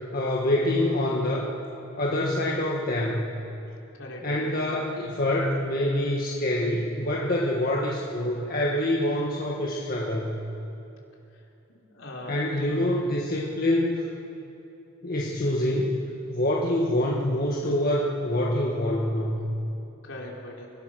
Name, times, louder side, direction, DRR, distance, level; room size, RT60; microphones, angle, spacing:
voice 1, 0.1-1.5 1.9-3.3 4.2-10.4 12.3-14.0 15.0-16.0 16.3-19.4, left 1 dB, 45° left, -3 dB, 1.7 m, -26 dB
voice 2, 3.9-4.6 11.3-12.7 20.0-20.7, left 1 dB, 65° left, -2 dB, 3.8 m, -41 dB
29.0 x 17.5 x 6.4 m, 2.9 s
head